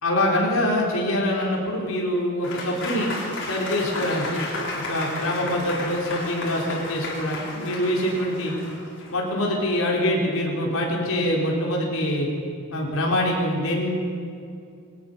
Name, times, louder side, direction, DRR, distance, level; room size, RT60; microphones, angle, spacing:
voice 1, 0.0-3.1 3.4-4.4 4.7-8.5 9.1-12.3 12.7-13.9, left 1 dB, 75° left, -2 dB, 4.1 m, -24 dB
Applause / Crowd, 2.4-9.3, left 2 dB, 55° left, 4.7 m, -33 dB
22.0 x 19.0 x 6.9 m, 2.5 s
head